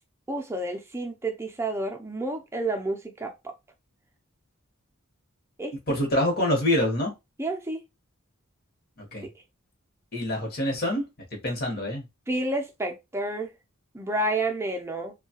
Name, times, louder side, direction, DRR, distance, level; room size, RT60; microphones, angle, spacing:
voice 1, 0.3-3.3 5.6-6.0 7.4-7.8 12.3-13.5 13.9-15.1, right 2 dB, 10° right, 0.5 m, -30 dB
voice 2, 5.9-7.1 9.0-9.3 10.1-11.0 11.4-12.0, left 1 dB, 45° left, 1.1 m, -26 dB
2.8 x 2.3 x 2.8 m
head